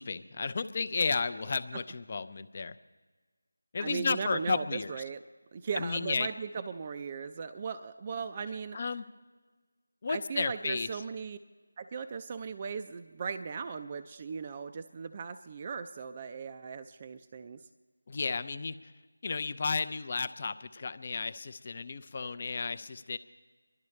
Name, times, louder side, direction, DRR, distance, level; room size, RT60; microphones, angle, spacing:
voice 1, 0.0-2.8 3.7-4.9 5.8-6.3 8.7-9.0 10.0-10.9 18.1-18.9 19.2-23.2, left 4 dB, 35° left, 12 dB, 0.6 m, -33 dB
voice 2, 3.8-5.2 5.5-8.8 10.1-11.4 11.8-17.6, right 5 dB, 25° right, 9 dB, 0.4 m, -38 dB
29.5 x 12.0 x 3.2 m, 1.4 s
figure-of-eight pair, 170°, 0 cm